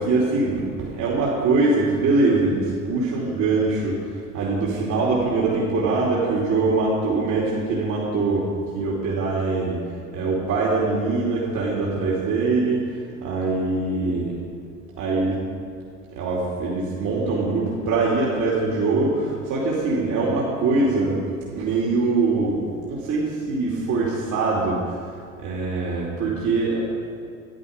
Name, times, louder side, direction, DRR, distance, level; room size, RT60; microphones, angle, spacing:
voice 1, 0.0-4.0 4.3-8.4 8.7-9.8 10.1-14.3 15.0-15.4 16.1-21.2 21.5-22.6 22.9-24.8 25.4-26.8, right 3 dB, 45° right, -5 dB, 2.8 m, -23 dB
14.5 x 10.5 x 5.3 m, 2.4 s
figure-of-eight pair, 65°, 43 cm